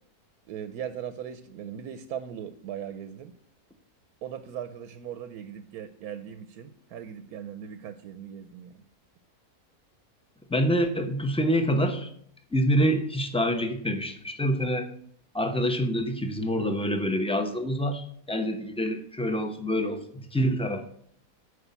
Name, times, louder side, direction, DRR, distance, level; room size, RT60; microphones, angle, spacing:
voice 1, 0.5-3.3 4.2-8.8, right 9 dB, 80° right, 10 dB, 1.1 m, -39 dB
voice 2, 10.5-12.1 12.5-14.9 15.3-20.9, equal, 5° left, 6 dB, 0.6 m, -26 dB
9.8 x 5.0 x 6.9 m, 0.64 s
omnidirectional pair, 1.6 m